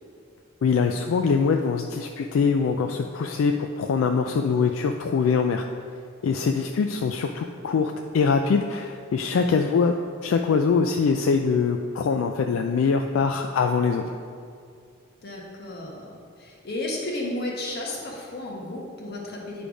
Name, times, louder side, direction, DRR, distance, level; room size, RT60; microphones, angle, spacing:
voice 1, 0.6-5.7 6.2-9.9 10.2-14.0, left 5 dB, 80° left, 4 dB, 0.3 m, -23 dB
voice 2, 15.2-19.7, left 1 dB, 50° left, -2 dB, 1.3 m, -33 dB
8.8 x 3.4 x 5.0 m, 2.3 s
head